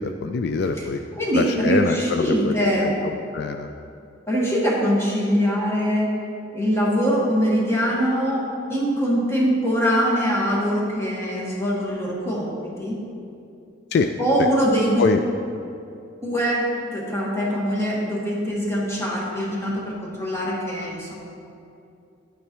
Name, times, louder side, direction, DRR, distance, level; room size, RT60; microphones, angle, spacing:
voice 1, 0.0-1.0 1.3-2.9 3.3-3.7 13.9-14.1 15.0-15.2, left 4 dB, 60° left, 6 dB, 0.3 m, -24 dB
voice 2, 1.2-2.9 4.3-6.2 6.5-13.0 14.2-15.1 16.2-21.1, equal, 15° left, -4 dB, 1.5 m, -23 dB
9.5 x 8.4 x 3.0 m, 2.6 s
head